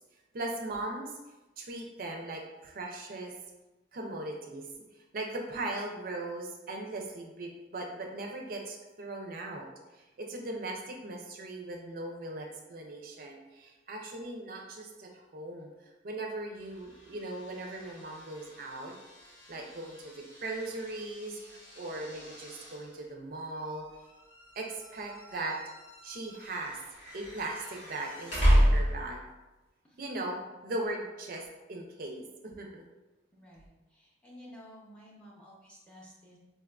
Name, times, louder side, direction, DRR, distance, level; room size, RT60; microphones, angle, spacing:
voice 1, 0.3-1.1 1.6-3.4 3.9-9.7 9.9-18.9 19.5-23.9 24.6-25.6 26.0-26.8 27.1-29.3 30.0-30.4 30.6-32.8, right 2 dB, 50° right, 1 dB, 0.4 m, -39 dB
sound 1, 16.5-29.3, equal, 90° left, 1.3 m, -33 dB
voice 2, 33.3-36.4, equal, 5° left, -4 dB, 0.5 m, -53 dB
4.2 x 2.3 x 2.2 m, 1.1 s
head